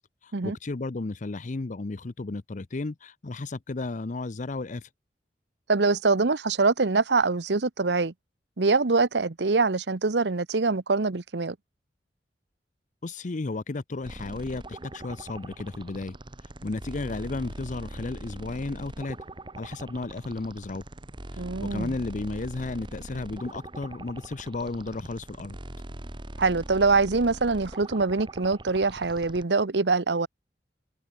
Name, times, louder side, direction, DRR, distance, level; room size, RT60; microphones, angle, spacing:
voice 1, 0.4-4.8 13.0-16.2 16.6-19.2 19.6-20.8 21.6-25.6, left 3 dB, 45° left, 0.6 m, -33 dB
voice 2, 5.7-8.1 8.6-11.6 21.4-21.9 26.4-30.3, right 3 dB, 75° right, 1.0 m, -24 dB
sound 1, 14.0-29.4, right 1 dB, 30° right, 1.4 m, -42 dB
head